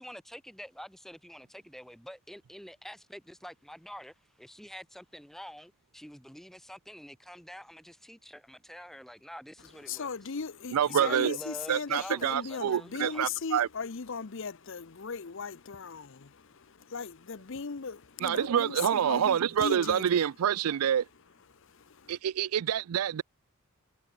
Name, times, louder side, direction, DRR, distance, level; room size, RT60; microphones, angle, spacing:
voice 1, 0.0-10.3 10.9-13.2, equal, ahead, 3.7 m, -47 dB
voice 2, 9.9-16.3 16.9-20.2, left 5 dB, 60° left, 0.7 m, -37 dB
voice 3, 10.7-11.4 11.7-13.7 18.2-21.0 22.1-23.2, right 9 dB, 85° right, 0.4 m, -27 dB
head